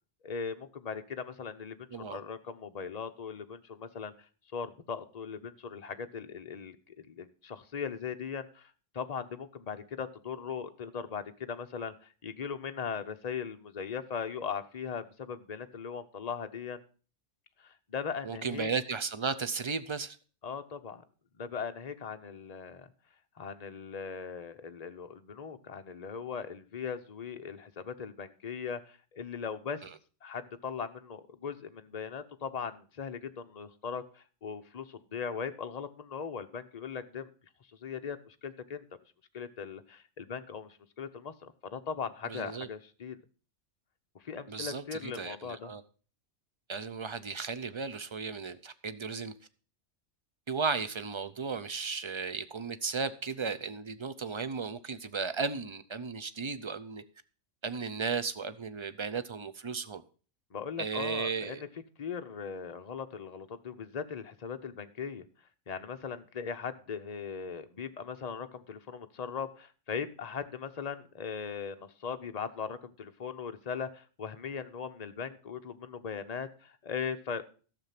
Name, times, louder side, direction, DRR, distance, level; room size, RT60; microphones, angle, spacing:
voice 1, 0.2-4.1 4.5-16.8 17.6-18.7 20.4-21.0 21.4-22.9 23.4-29.9 30.2-37.3 37.7-38.8 39.3-43.2 44.2-45.7 60.5-61.7 62.0-65.2 65.7-77.4, left 6 dB, 35° left, 0.9 m, -39 dB
voice 2, 18.2-20.2 42.3-42.7 44.5-45.8 46.7-49.3 50.5-57.0 57.6-60.0 60.8-61.6, right 5 dB, 35° right, 0.5 m, -35 dB
12.5 x 6.9 x 5.8 m
omnidirectional pair, 1.3 m